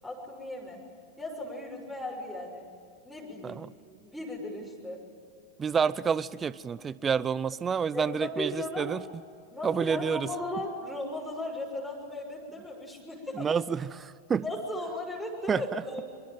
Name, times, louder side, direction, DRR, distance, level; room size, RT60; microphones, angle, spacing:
voice 1, 0.0-0.8 1.2-2.6 3.0-3.6 4.0-5.0 7.9-8.9 9.5-13.6 14.4-16.2, left 1 dB, ahead, -3 dB, 6.4 m, -37 dB
voice 2, 5.6-9.0 9.6-10.3 13.3-14.4 15.5-15.8, right 6 dB, 20° right, 20 dB, 0.7 m, -29 dB
25.5 x 25.0 x 9.0 m, 2.3 s
figure-of-eight pair, 90°, 0 cm